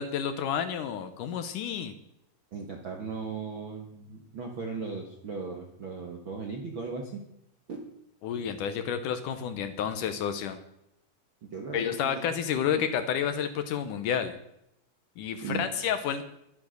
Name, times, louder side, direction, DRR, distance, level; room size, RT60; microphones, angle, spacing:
voice 1, 0.0-1.9 8.2-10.6 11.7-14.3 15.2-16.2, left 8 dB, 75° left, 9 dB, 2.1 m, -30 dB
voice 2, 2.5-7.2 7.7-7.8 11.4-12.1 12.7-12.8 15.4-15.7, right 4 dB, 60° right, 2 dB, 1.3 m, -37 dB
12.0 x 10.5 x 6.4 m, 0.79 s
omnidirectional pair, 4.2 m